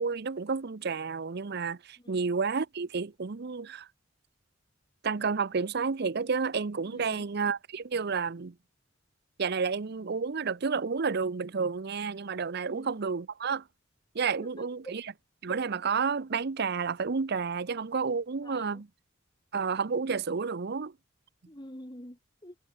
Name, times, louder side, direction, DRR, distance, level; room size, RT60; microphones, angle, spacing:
voice 1, 0.0-3.9 5.0-8.5 9.4-13.6 14.1-15.0 15.4-18.9 19.5-20.9, right 5 dB, 55° right, 0.7 m, -30 dB
voice 2, 2.0-2.3 6.9-7.3 12.6-13.0 14.3-15.0 18.4-18.8 21.5-22.6, left 1 dB, 25° left, 4.7 m, -48 dB
head